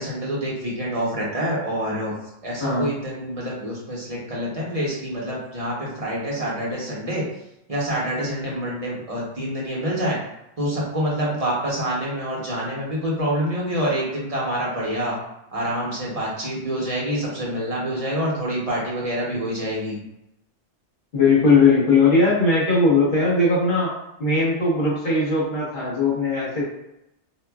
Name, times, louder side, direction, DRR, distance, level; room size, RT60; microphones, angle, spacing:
voice 1, 0.0-2.1 2.4-7.2 7.7-10.2 10.6-15.2 15.5-20.0, equal, 35° right, -5 dB, 0.9 m, -26 dB
voice 2, 2.6-2.9 21.1-23.9 24.2-26.7, left 3 dB, 50° left, -7 dB, 1.4 m, -19 dB
4.4 x 2.3 x 2.3 m, 0.86 s
omnidirectional pair, 1.2 m